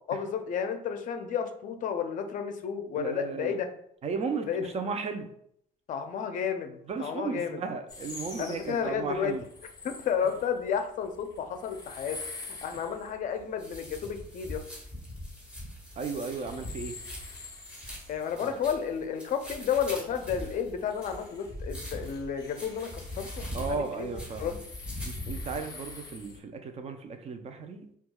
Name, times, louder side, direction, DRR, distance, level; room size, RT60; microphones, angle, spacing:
voice 1, 0.1-3.7 4.5-4.6 5.9-7.6 8.4-9.3 9.8-12.2 12.6-14.6 18.1-24.1 24.4-24.5, left 7 dB, 50° left, 7 dB, 0.5 m, -32 dB
voice 2, 3.0-3.6 4.0-5.3 6.9-9.5 12.7-12.8 16.0-17.0 18.4-18.6 23.5-24.6 25.1-27.9, right 4 dB, 40° right, 7 dB, 0.5 m, -35 dB
sound 1, 7.9-26.4, left 3 dB, 25° left, 0.8 m, -48 dB
sound 2, 13.3-25.6, left 1 dB, 5° right, 1.1 m, -41 dB
4.3 x 2.3 x 2.3 m, 0.69 s
cardioid pair, 110°, 17 cm